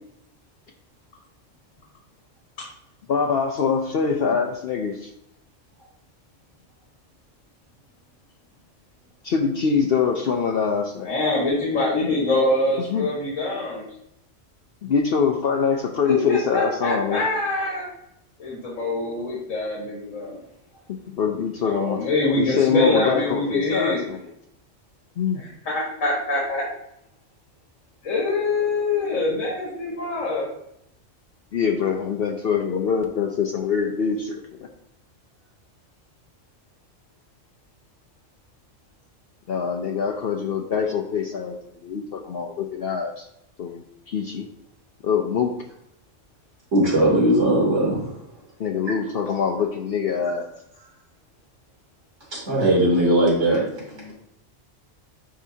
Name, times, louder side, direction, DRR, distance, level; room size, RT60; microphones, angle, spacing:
voice 1, 3.1-5.1 9.2-11.1 12.9-13.1 14.8-17.2 20.9-22.0 22.4-24.2 25.2-25.4 31.5-34.7 39.5-41.6 41.8-43.3 43.6-44.5 45.0-45.5 48.6-50.5, left 6 dB, 60° left, 3 dB, 0.7 m, -24 dB
voice 2, 11.1-13.8 16.0-17.8 18.4-20.4 21.6-24.0 25.4-26.6 28.0-30.5 53.7-54.1, left 2 dB, 90° left, -4 dB, 1.9 m, -24 dB
voice 3, 46.7-48.0 52.3-53.6, right 1 dB, 70° right, -5 dB, 3.1 m, -19 dB
10.0 x 3.8 x 2.7 m, 0.80 s
omnidirectional pair, 1.3 m